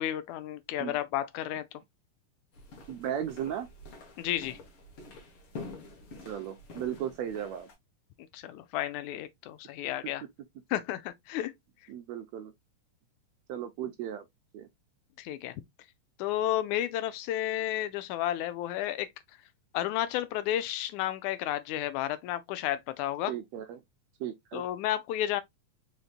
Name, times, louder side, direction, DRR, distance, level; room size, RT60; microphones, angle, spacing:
voice 1, 0.0-1.7 4.2-4.6 8.2-10.2 10.7-11.5 15.2-15.6 16.2-19.1 19.7-23.3 24.5-25.4, left 12 dB, 80° left, 2.0 m, -32 dB
sound 1, 2.5-7.7, left 3 dB, 50° left, 1.9 m, -47 dB
voice 2, 2.9-3.7 6.3-7.7 11.9-12.5 13.5-14.2 14.5-14.7 23.3-23.8 24.2-24.7, right 10 dB, 80° right, 1.7 m, -36 dB
5.2 x 4.3 x 2.3 m
omnidirectional pair, 3.5 m